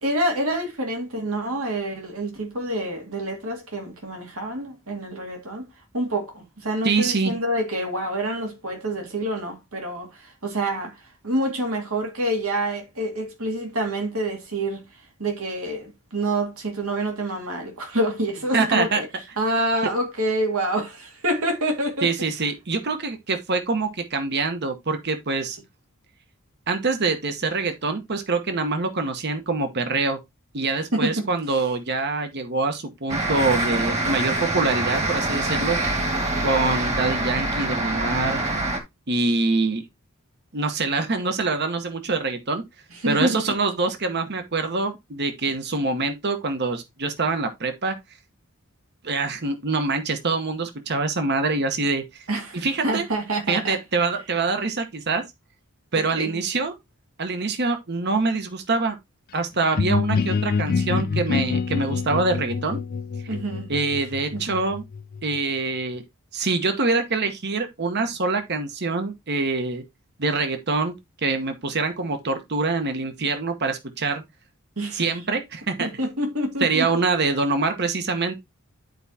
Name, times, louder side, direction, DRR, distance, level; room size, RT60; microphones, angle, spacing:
voice 1, 0.0-5.7 5.9-11.0 11.2-14.8 15.2-19.1 19.4-22.1 30.9-31.6 42.9-43.4 52.3-53.8 56.1-56.3 63.3-63.7 64.3-64.5 74.8-75.0 75.8-76.9, right 1 dB, 80° right, 2.2 m, -27 dB
voice 2, 6.8-7.3 18.5-19.0 22.0-25.6 26.7-30.2 30.5-35.8 36.4-38.4 39.1-39.8 40.5-42.6 43.1-47.9 49.0-52.2 52.5-53.0 53.5-55.2 55.9-56.8 57.2-59.0 59.3-62.8 63.7-64.8 65.2-66.0 66.3-69.8 70.2-71.0 71.2-74.2 74.9-75.9 76.6-78.4, right 3 dB, 50° right, 1.1 m, -25 dB
sound 1, 33.1-38.8, right 2 dB, 30° right, 1.7 m, -25 dB
sound 2, 59.7-65.4, left 5 dB, 45° left, 0.4 m, -26 dB
10.5 x 4.7 x 2.8 m
head